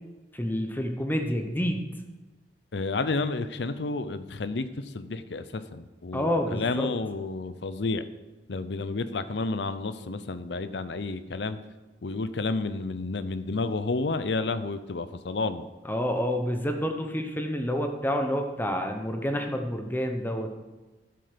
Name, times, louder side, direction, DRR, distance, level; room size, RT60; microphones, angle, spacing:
voice 1, 0.3-1.8 6.1-6.9 15.8-20.5, equal, 10° left, 5 dB, 0.9 m, -28 dB
voice 2, 2.7-8.0 8.5-11.6 12.0-15.7, left 3 dB, 75° left, 13 dB, 0.7 m, -31 dB
12.5 x 7.7 x 5.1 m, 1.1 s
head